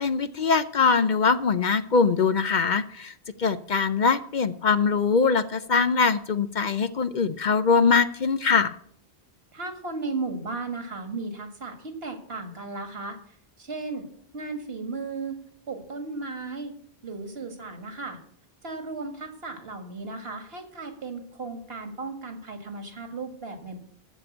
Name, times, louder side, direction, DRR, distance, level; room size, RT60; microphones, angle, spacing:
voice 1, 0.0-3.1 3.4-8.8, left 5 dB, 55° left, 12 dB, 0.7 m, -22 dB
voice 2, 9.5-14.1 14.3-15.4 15.7-16.7 17.0-18.2 18.6-23.8, right 3 dB, 75° right, 6 dB, 2.1 m, -35 dB
14.5 x 5.2 x 8.3 m, 0.63 s
omnidirectional pair, 1.0 m